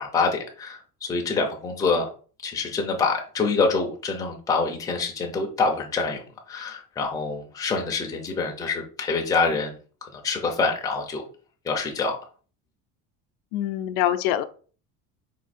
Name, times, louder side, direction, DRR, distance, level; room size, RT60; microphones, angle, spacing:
voice 1, 0.0-2.1 2.4-6.2 6.5-11.2 11.6-12.2, left 4 dB, 10° left, 1 dB, 0.5 m, -26 dB
voice 2, 13.5-14.4, left 12 dB, 75° left, 10 dB, 0.6 m, -24 dB
4.4 x 2.7 x 4.0 m, 0.39 s
cardioid pair, 170°, 37 cm